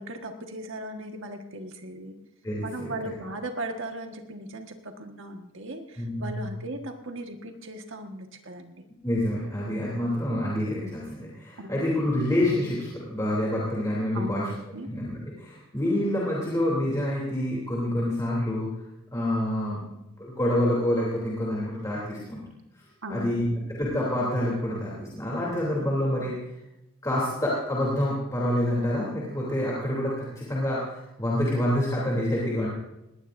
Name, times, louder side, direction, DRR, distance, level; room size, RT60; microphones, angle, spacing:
voice 1, 0.0-2.2 2.6-8.9 11.6-11.8 14.1-14.9 23.0-23.7, right 1 dB, 60° right, 4 dB, 1.6 m, -38 dB
voice 2, 2.4-2.9 6.0-6.5 9.0-14.5 14.9-18.7 19.1-22.4 23.1-26.3 27.0-32.7, left 1 dB, 15° left, -5 dB, 3.0 m, -27 dB
19.5 x 18.5 x 2.6 m, 0.92 s
head